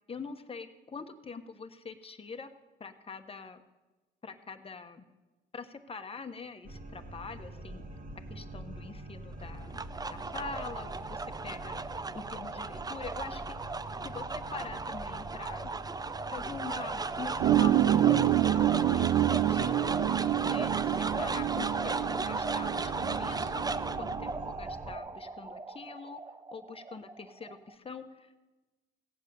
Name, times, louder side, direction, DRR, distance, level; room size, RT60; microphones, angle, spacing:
voice 1, 0.1-2.5 2.8-3.6 4.2-5.0 5.5-7.8 8.3-9.8 10.1-11.8 12.3-13.6 14.0-14.2 14.5-15.7 16.3-19.9 20.4-23.6 24.0-26.2 26.5-28.5, left 4 dB, 30° left, 7 dB, 1.2 m, -44 dB
sound 1, 6.6-25.0, right 1 dB, 40° right, 1.7 m, -45 dB
sound 2, 9.4-27.7, right 3 dB, 20° right, 0.5 m, -36 dB
sound 3, 17.4-24.4, right 12 dB, 75° right, 0.6 m, -28 dB
17.0 x 8.3 x 7.0 m, 1.2 s
cardioid pair, 90°, 20 cm